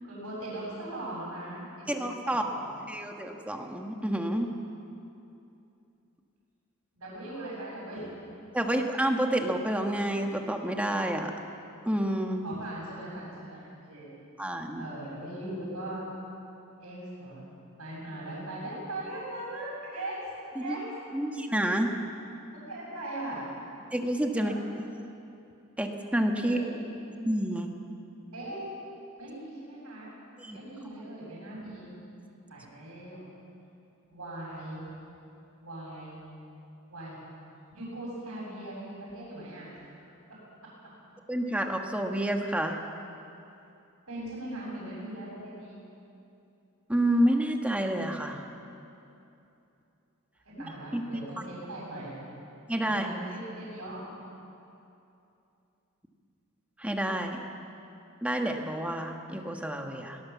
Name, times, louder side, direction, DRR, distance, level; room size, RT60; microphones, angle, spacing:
voice 1, 0.0-2.9 7.0-8.2 12.4-14.1 14.8-16.0 16.8-17.4 17.8-20.2 20.6-20.9 22.7-23.5 24.3-24.6 26.4-26.7 28.3-28.7 29.2-30.2 30.5-31.9 32.5-33.2 34.1-34.8 35.6-36.2 36.9-37.2 37.7-39.7 44.1-45.8 50.6-52.2 52.8-54.0, right 1 dB, 85° right, -7 dB, 7.4 m, -39 dB
voice 2, 1.9-2.4 2.9-4.5 8.5-11.3 11.8-12.4 14.4-14.9 20.6-20.8 21.1-21.9 23.9-24.6 25.8-26.6 27.1-27.8 30.4-30.6 41.3-42.8 46.9-48.4 50.9-51.0 52.7-53.1 56.8-57.4 58.2-60.2, right 1 dB, 5° right, 3 dB, 1.4 m, -29 dB
23.0 x 18.5 x 7.3 m, 2.7 s
head